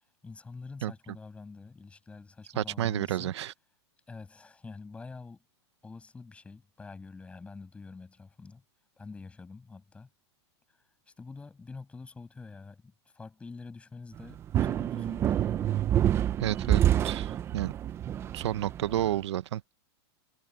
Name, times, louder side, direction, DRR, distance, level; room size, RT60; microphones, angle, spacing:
voice 1, 0.2-3.3 4.1-5.4 5.8-8.6 9.0-10.1 11.1-15.6, left 4 dB, 10° left, 7.8 m, -46 dB
voice 2, 2.6-3.5 16.4-17.7 18.3-19.6, right 12 dB, 75° right, 1.1 m, -31 dB
sound 1, 14.2-19.2, right 11 dB, 15° right, 0.7 m, -27 dB
supercardioid pair, 165°, 15 cm